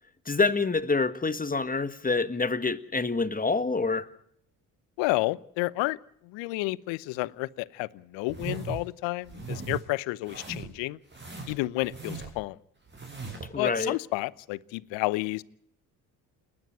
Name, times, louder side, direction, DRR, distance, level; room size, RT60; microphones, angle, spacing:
voice 1, 0.2-4.1 13.4-13.9, left 3 dB, 20° left, 12 dB, 1.6 m, -27 dB
voice 2, 5.0-6.0 6.2-11.0 11.5-12.6 13.6-15.4, left 21 dB, 70° left, 21 dB, 0.9 m, -30 dB
sound 1, 8.3-8.9 9.2-9.8 10.2-10.8 11.1-12.5 12.9-13.5, right 4 dB, 25° right, 6.7 m, -38 dB
29.0 x 10.0 x 9.3 m, 0.69 s
hypercardioid pair, 55°, 47 cm